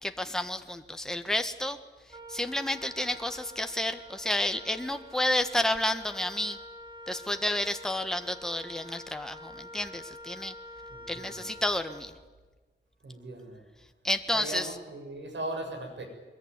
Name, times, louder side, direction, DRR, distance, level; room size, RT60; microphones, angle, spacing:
voice 1, 0.0-1.8 2.3-6.6 7.1-10.5 11.1-12.1 14.0-14.7, left 1 dB, 5° left, 7 dB, 1.6 m, -30 dB
Wind instrument woodwind instrument, 2.1-12.5, left 1 dB, 25° right, 5.0 m, -47 dB
voice 2, 10.9-11.5 13.0-13.6 14.3-16.0, right 1 dB, 85° right, 3 dB, 7.6 m, -38 dB
22.5 x 21.5 x 9.9 m, 1.3 s
wide cardioid pair, 105°, 18 cm